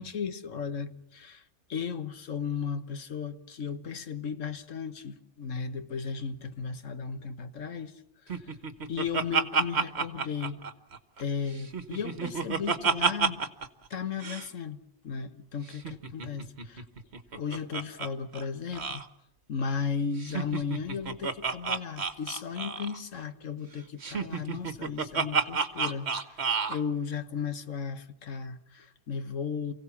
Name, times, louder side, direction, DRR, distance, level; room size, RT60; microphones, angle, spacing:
voice 1, 0.0-1.4 1.7-7.9 8.9-10.6 11.2-13.4 13.9-14.8 15.0-16.8 17.3-19.0 19.5-29.7, left 6 dB, 80° left, 1.6 m, -35 dB
Laughter, 8.3-11.2 11.6-13.7 13.9-14.0 14.2-14.5 15.7-18.1 18.3-18.4 18.7-19.0 20.2-23.0 24.0-26.8, right 5 dB, 60° right, 1.5 m, -30 dB
29.0 x 17.0 x 7.1 m
omnidirectional pair, 1.3 m